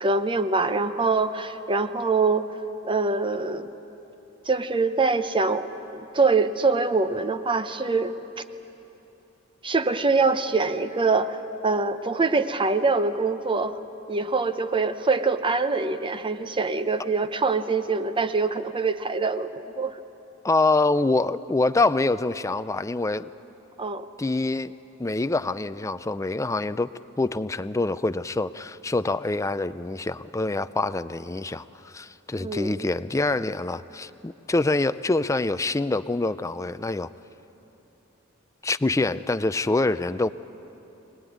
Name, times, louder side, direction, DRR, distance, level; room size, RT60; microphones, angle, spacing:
voice 1, 0.0-2.5 2.8-3.7 4.5-8.1 9.6-13.8 14.1-20.0 23.8-24.1 32.4-32.9, right 3 dB, 25° right, 10 dB, 0.8 m, -24 dB
voice 2, 20.4-23.3 24.2-24.7 25.0-26.9 27.2-37.1 38.6-40.3, left 2 dB, 15° left, 13 dB, 0.5 m, -25 dB
24.0 x 19.5 x 9.4 m, 3.0 s
head